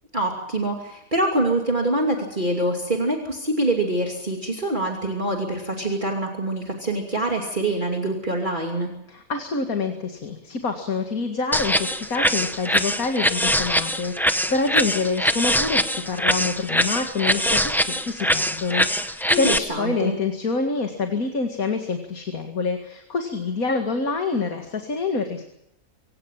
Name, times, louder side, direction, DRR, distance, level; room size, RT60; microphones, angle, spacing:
voice 1, 0.1-8.9 19.3-20.2, right 1 dB, 30° right, 1 dB, 2.9 m, -25 dB
voice 2, 9.1-25.4, left 4 dB, 70° left, 4 dB, 2.5 m, -26 dB
sound 1, 11.5-19.6, equal, ahead, 0.7 m, -23 dB
25.5 x 18.0 x 7.4 m, 0.78 s
omnidirectional pair, 1.5 m